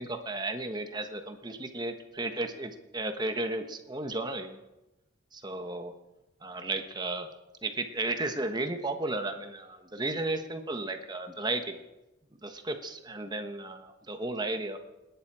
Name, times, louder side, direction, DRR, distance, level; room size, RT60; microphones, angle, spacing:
voice 1, 0.0-4.6 5.3-5.9 6.4-7.3 7.6-11.8 12.4-14.8, right 2 dB, 20° right, 6 dB, 1.2 m, -34 dB
27.5 x 10.5 x 4.8 m, 0.99 s
head